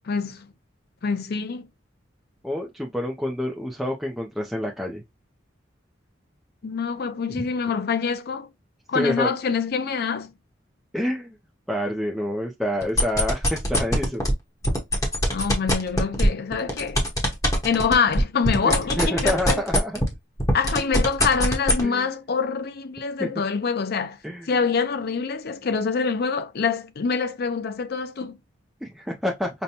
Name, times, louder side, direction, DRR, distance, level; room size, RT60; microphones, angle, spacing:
voice 1, 0.0-0.5 1.0-1.6 6.6-8.5 8.9-10.3 15.3-17.0 17.6-19.6 20.5-24.2 24.5-28.4, left 5 dB, 55° left, 0.5 m, -25 dB
voice 2, 2.4-5.0 7.3-7.5 8.9-9.3 10.9-11.3 11.7-14.2 18.6-20.0 21.8-22.1 23.2-23.3 24.2-24.5 28.8-29.5, left 1 dB, ahead, 0.5 m, -27 dB
sound 1, 12.8-14.3 14.6-20.1 20.4-21.8, equal, 20° left, 0.9 m, -21 dB
5.3 x 2.1 x 2.8 m
head